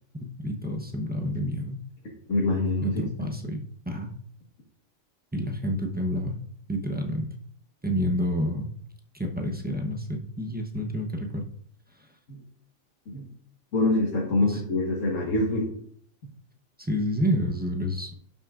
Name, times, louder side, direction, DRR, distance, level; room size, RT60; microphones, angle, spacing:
voice 1, 0.1-1.8 2.8-3.6 3.9-4.2 5.3-7.3 7.8-8.7 9.1-11.4 14.4-14.6 16.8-18.1, equal, 10° right, 1 dB, 0.5 m, -29 dB
voice 2, 2.3-3.3 12.3-12.4 13.1-13.3 13.7-15.7, left 2 dB, 70° left, -3 dB, 1.7 m, -25 dB
12.0 x 5.9 x 2.5 m, 0.64 s
omnidirectional pair, 1.4 m